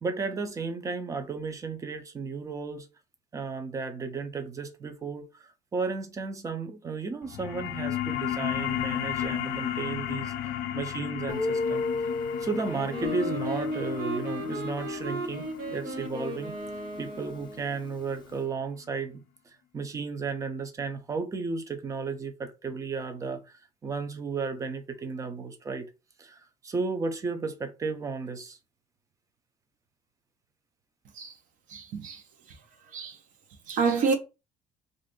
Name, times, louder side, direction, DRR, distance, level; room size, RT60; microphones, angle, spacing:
voice 1, 0.0-2.9 3.3-12.1 12.4-16.5 17.0-19.2 19.7-25.9 26.2-28.6, right 4 dB, 20° right, 0.5 m, -34 dB
sound 1, 7.2-18.3, left 11 dB, 75° left, 0.5 m, -35 dB
Guitar, 11.3-17.9, left 4 dB, 30° left, 0.6 m, -34 dB
Wind instrument woodwind instrument, 12.6-17.8, right 3 dB, 75° right, 1.2 m, -38 dB
voice 2, 31.7-32.2 32.9-33.2 33.7-34.2, right 5 dB, 55° right, 0.7 m, -27 dB
2.6 x 2.5 x 3.7 m
cardioid pair, 155°, 16 cm